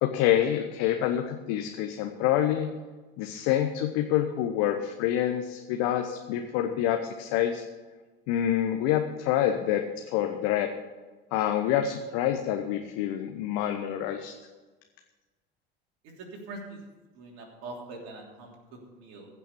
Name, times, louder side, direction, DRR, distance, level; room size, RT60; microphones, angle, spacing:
voice 1, 0.0-2.7 3.2-7.6 8.3-10.7 11.3-14.3, left 11 dB, 60° left, 5 dB, 1.0 m, -27 dB
voice 2, 16.0-16.8 17.1-19.3, right 2 dB, 60° right, 0 dB, 3.3 m, -43 dB
15.5 x 6.0 x 7.0 m, 1.3 s
hypercardioid pair, 70°, 30 cm